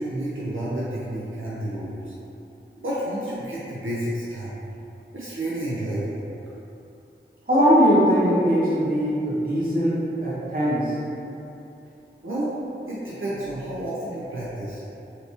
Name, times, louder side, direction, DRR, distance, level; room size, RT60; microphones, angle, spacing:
voice 1, 0.0-2.1 2.8-4.6 5.1-6.2 12.2-12.5 12.9-14.8, right 1 dB, 85° right, -8 dB, 0.5 m, -30 dB
voice 2, 7.5-10.9, equal, 45° right, -9 dB, 1.0 m, -20 dB
3.2 x 2.8 x 2.8 m, 2.8 s
wide cardioid pair, 45°, 20 cm